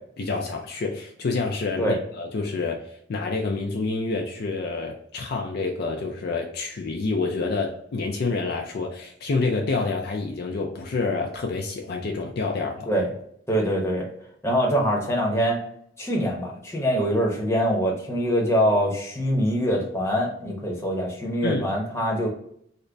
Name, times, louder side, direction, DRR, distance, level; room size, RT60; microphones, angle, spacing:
voice 1, 0.2-12.9 21.4-21.7, left 3 dB, 55° left, 2 dB, 0.4 m, -28 dB
voice 2, 13.5-14.1 14.4-15.6 16.0-22.3, equal, 15° left, -1 dB, 0.8 m, -24 dB
3.8 x 2.1 x 3.3 m, 0.68 s
head